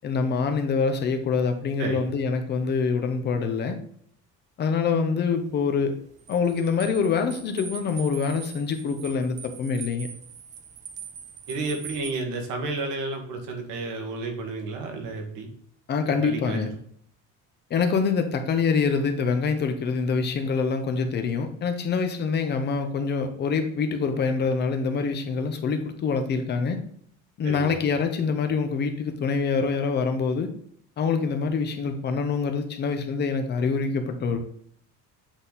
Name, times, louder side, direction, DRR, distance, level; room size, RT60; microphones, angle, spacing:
voice 1, 0.0-3.8 4.6-5.9 6.3-10.1 15.9-16.7 17.7-26.8 27.4-30.5 31.0-34.4, left 5 dB, 35° left, 6 dB, 0.8 m, -25 dB
sound 1, 5.2-12.1, right 6 dB, 25° right, 0.3 m, -42 dB
voice 2, 11.5-15.5 16.2-16.7 27.4-27.7, right 3 dB, 80° right, 3 dB, 1.7 m, -31 dB
8.0 x 4.0 x 4.0 m, 0.64 s
cardioid pair, 170°, 30 cm